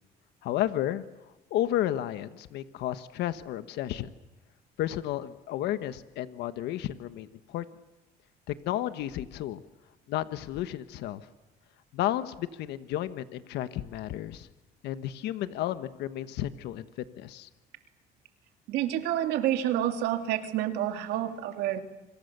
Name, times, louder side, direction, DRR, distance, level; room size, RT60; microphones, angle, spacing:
voice 1, 0.4-1.0 1.5-4.1 4.8-7.6 8.5-9.6 10.1-11.2 11.9-14.5 14.8-16.8 17.2-17.5, left 13 dB, 80° left, 12 dB, 1.3 m, -32 dB
voice 2, 18.7-21.8, right 11 dB, 85° right, 6 dB, 2.7 m, -28 dB
28.0 x 25.5 x 6.9 m, 1.0 s
cardioid pair, 110°, 17 cm